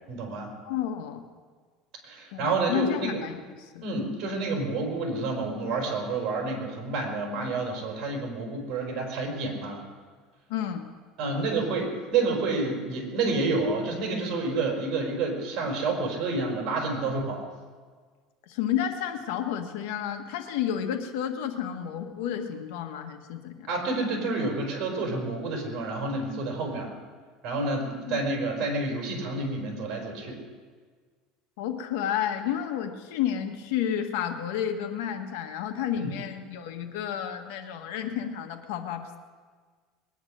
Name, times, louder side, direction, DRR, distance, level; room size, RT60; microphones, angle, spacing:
voice 1, 0.1-0.5 2.0-3.2 3.8-9.8 11.2-17.4 23.7-26.9 27.4-30.4 36.0-36.1, right 3 dB, 50° right, 1 dB, 4.9 m, -29 dB
voice 2, 0.6-1.3 2.3-3.8 10.5-10.9 18.5-23.7 28.1-28.2 31.6-39.2, left 9 dB, 80° left, 6 dB, 1.6 m, -31 dB
21.0 x 10.0 x 6.5 m, 1.6 s
cardioid pair, 145°, 0 cm